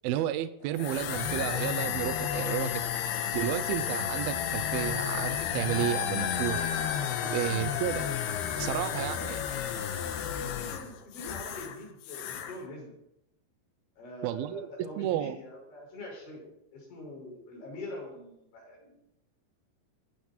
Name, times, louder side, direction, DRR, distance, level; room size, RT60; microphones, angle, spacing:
voice 1, 0.0-2.8 3.3-6.6 7.3-8.1 8.6-9.4 14.2-15.4, right 12 dB, 85° right, 12 dB, 2.2 m, -32 dB
sound 1, 0.6-9.4, left 4 dB, 50° left, 2.7 m, -52 dB
sound 2, 0.8-11.8 12.0-12.6, left 9 dB, 70° left, 2.9 m, -32 dB
voice 2, 8.6-9.3 10.0-12.9 14.0-16.5 16.7-18.9, left 1 dB, 85° left, -2 dB, 8.1 m, -44 dB
24.0 x 9.2 x 4.4 m, 0.82 s
omnidirectional pair, 5.1 m